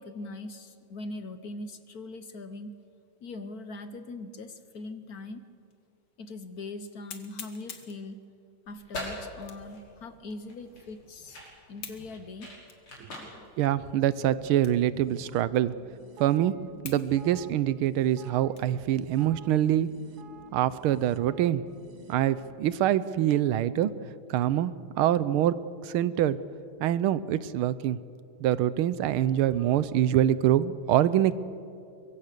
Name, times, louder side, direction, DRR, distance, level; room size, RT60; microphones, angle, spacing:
voice 1, 0.0-2.7 3.2-5.4 6.2-8.2 8.7-11.4 11.7-12.5 13.1-13.5, left 2 dB, 55° left, 10 dB, 1.3 m, -41 dB
sound 1, 5.7-5.8 6.3-6.4 7.1-8.0 9.4-9.8 10.3-10.4 11.8-12.1 12.7-12.8 13.5-13.6 14.6-14.9 15.2-15.3 16.0-16.1 16.8-17.1 17.4-18.8 19.3-19.5 20.0-20.4, left 7 dB, 70° left, 2.5 m, -45 dB
sound 2, 8.6-14.7, left 1 dB, 90° left, 6.2 m, -43 dB
voice 2, 13.6-15.7 16.2-16.5 16.8-19.9 20.5-21.6 22.1-23.9 24.3-25.6 25.8-26.4 26.8-28.0 28.4-31.4, right 12 dB, 85° right, 16 dB, 1.6 m, -25 dB
sound 3, 14.9-22.6, right 6 dB, 55° right, 1.4 m, -50 dB
24.5 x 22.5 x 6.7 m, 2.5 s
omnidirectional pair, 2.3 m